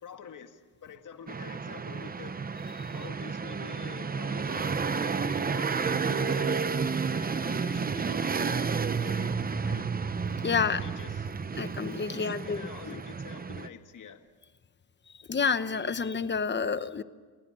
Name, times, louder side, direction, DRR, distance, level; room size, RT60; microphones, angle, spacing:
voice 1, 0.0-2.4 2.9-6.6 7.1-8.6 9.0-9.3 9.7-9.9 10.5-11.3 12.1-14.2, left 6 dB, 40° left, 6 dB, 2.0 m, -46 dB
sound 1, 1.3-13.7, right 5 dB, 20° right, 0.8 m, -31 dB
voice 2, 10.4-10.8 11.6-12.6 12.9-13.0 15.3-17.0, left 5 dB, 25° left, 12 dB, 1.0 m, -29 dB
29.0 x 20.0 x 8.9 m, 1.4 s
cardioid pair, 150°, 47 cm